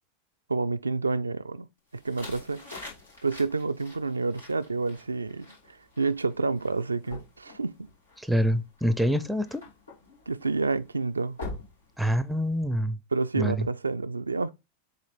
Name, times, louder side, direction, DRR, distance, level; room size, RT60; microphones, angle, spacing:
voice 1, 0.5-1.7 1.9-2.6 3.2-7.9 10.3-11.4 13.1-14.5, right 3 dB, 80° right, 0.3 m, -29 dB
sound 1, 1.9-12.6, left 2 dB, 80° left, 2.9 m, -46 dB
voice 2, 8.2-9.6 12.0-13.0 13.4-13.7, equal, ahead, 0.5 m, -26 dB
7.3 x 3.0 x 4.3 m
figure-of-eight pair, 90°, 0 cm